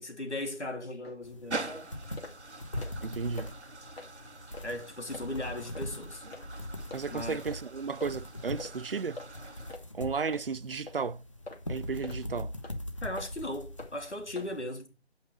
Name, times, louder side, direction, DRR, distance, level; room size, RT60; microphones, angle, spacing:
voice 1, 0.0-1.9 4.6-6.2 7.1-7.4 13.0-15.0, left 1 dB, 85° left, 3.1 m, -38 dB
sound 1, 1.0-1.2 1.6-1.8 2.2-2.4 2.7-3.1 3.4-3.5 3.9-4.1 4.5-4.7 5.1-5.3 5.8-5.9 6.3-6.5 6.9-7.0 7.5-7.6 8.0-8.2 8.6-8.8 9.2-9.3 9.7-9.9 10.3-10.5 10.9-11.0 11.5-11.6 12.0-12.2 12.6-12.8 13.2-13.3 13.8-13.9 14.4-14.5, left 3 dB, 65° left, 2.7 m, -44 dB
sound 2, 1.2-14.6, left 1 dB, 30° left, 0.9 m, -42 dB
sound 3, 1.5-9.8, right 3 dB, 80° right, 1.4 m, -44 dB
voice 2, 3.0-3.5 6.9-9.2 9.9-11.2 11.7-12.5, right 5 dB, 55° right, 0.5 m, -34 dB
9.1 x 5.5 x 6.1 m
figure-of-eight pair, 170°, 34 cm